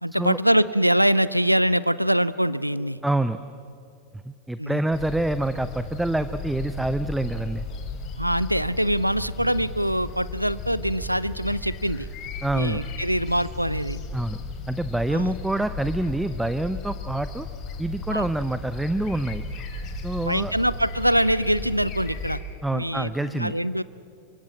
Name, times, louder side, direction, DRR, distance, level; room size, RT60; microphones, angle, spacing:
voice 1, 0.0-3.0 4.6-4.8 8.2-12.1 12.5-14.0 15.1-15.3 18.1-18.3 20.2-22.4 22.7-23.8, equal, 90° right, 18 dB, 0.6 m, -23 dB
voice 2, 3.0-3.4 4.1-7.7 12.4-12.8 14.1-14.4 14.7-17.5 17.8-19.4 19.9-20.5 22.6-23.5, right 1 dB, 5° right, 12 dB, 0.7 m, -26 dB
sound 1, 4.9-22.4, left 3 dB, 35° left, 3.2 m, -35 dB
25.5 x 24.5 x 7.4 m, 2.6 s
figure-of-eight pair, 90°, 0 cm